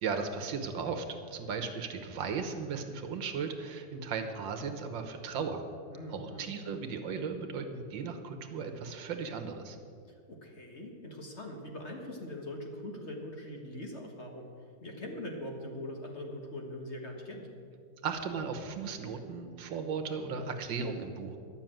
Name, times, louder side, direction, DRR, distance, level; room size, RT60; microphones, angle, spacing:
voice 1, 0.0-5.6 6.1-9.8 18.0-21.4, right 5 dB, 85° right, 7 dB, 1.8 m, -36 dB
voice 2, 5.9-6.6 10.1-14.5 14.8-17.5, left 1 dB, 40° left, 1 dB, 1.6 m, -42 dB
11.5 x 6.7 x 9.0 m, 2.3 s
omnidirectional pair, 2.0 m